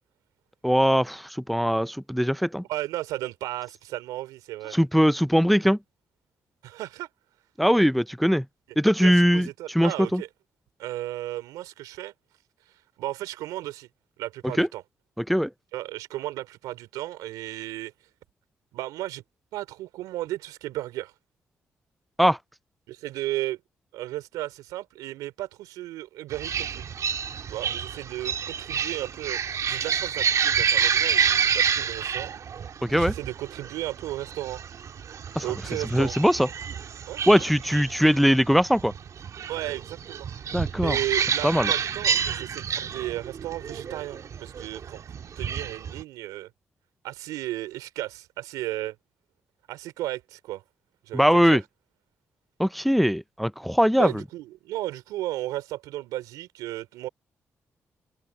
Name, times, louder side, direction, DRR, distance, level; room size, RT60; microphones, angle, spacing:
voice 1, 0.6-2.6 4.7-5.8 7.6-8.4 8.8-10.2 14.6-14.7 15.2-15.5 22.2-22.4 32.8-33.1 35.4-35.5 35.9-36.5 37.3-38.9 40.5-41.0 41.4-41.7 51.1-51.6 52.6-54.1, equal, ahead, 0.6 m, -21 dB
voice 2, 2.7-4.8 6.6-7.1 9.0-10.3 10.8-12.1 13.0-13.9 14.2-14.8 15.7-17.9 18.7-19.2 19.5-21.1 22.9-23.6 23.9-26.7 27.5-32.3 32.9-34.6 35.4-36.2 37.1-37.3 39.5-40.3 40.8-45.0 45.4-46.5 47.0-49.0 49.7-50.6 51.1-51.6 54.0-57.1, right 15 dB, 85° right, 3.6 m, -34 dB
sound 1, 26.3-46.0, right 7 dB, 60° right, 1.8 m, -29 dB
supercardioid pair, 45°, 6 cm